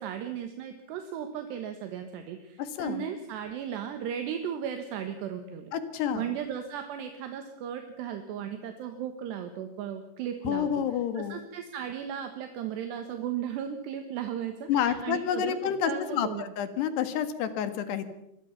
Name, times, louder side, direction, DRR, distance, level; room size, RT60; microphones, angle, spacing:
voice 1, 0.0-5.7 6.1-10.7 11.2-15.6 15.8-16.4, right 9 dB, 75° right, 6 dB, 3.6 m, -36 dB
voice 2, 2.6-3.0 5.7-6.3 10.5-11.4 14.7-18.1, left 9 dB, 75° left, 10 dB, 3.7 m, -29 dB
25.5 x 21.0 x 5.9 m, 0.80 s
omnidirectional pair, 5.0 m